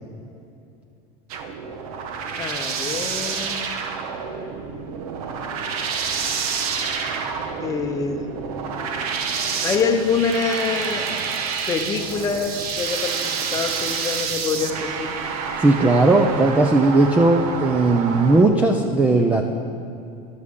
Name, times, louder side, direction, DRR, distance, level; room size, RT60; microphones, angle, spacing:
sound 1, 1.3-18.4, right 6 dB, 90° right, 1.1 m, -28 dB
voice 1, 2.4-3.6 7.6-8.3 9.6-11.0 11.7-13.1 13.5-15.1, left 5 dB, 20° left, 5 dB, 0.7 m, -25 dB
voice 2, 15.6-19.4, right 2 dB, 10° right, 3 dB, 0.3 m, -17 dB
13.0 x 12.5 x 3.6 m, 2.6 s
cardioid pair, 165°, 18 cm